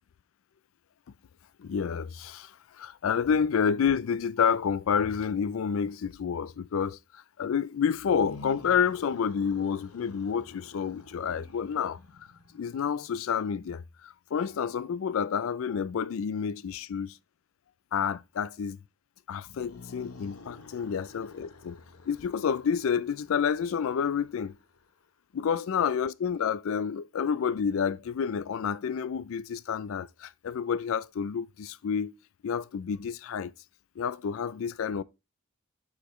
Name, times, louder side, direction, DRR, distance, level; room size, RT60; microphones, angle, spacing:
voice 1, 1.6-12.0 12.5-17.1 17.9-18.8 19.3-21.8 22.1-24.5 25.3-32.1 32.4-33.5 34.0-35.0, left 7 dB, 65° left, 0.3 m, -29 dB
sound 1, 7.9-13.1 19.3-25.0, left 3 dB, 85° left, 0.9 m, -50 dB
8.2 x 5.0 x 3.0 m
head